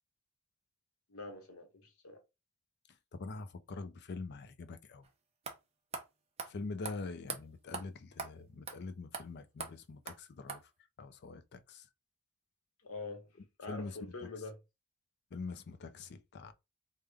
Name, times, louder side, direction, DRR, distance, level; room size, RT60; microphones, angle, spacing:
voice 1, 1.1-2.2 12.8-13.3 13.6-14.6, left 3 dB, 85° left, 1.0 m, -45 dB
voice 2, 3.1-5.1 6.4-10.7 11.0-11.9 13.7-14.0 15.3-16.5, left 3 dB, 50° left, 0.5 m, -44 dB
sound 1, 5.0-5.1 5.5-5.6 5.9-6.1 6.4-6.5 6.8-7.0 7.3-7.4 7.7-7.8 8.2-8.3 8.7-8.8 9.1-9.2 9.6-9.7 10.1-10.2 10.5-10.6, right 5 dB, 30° right, 0.6 m, -40 dB
3.5 x 2.1 x 3.3 m
head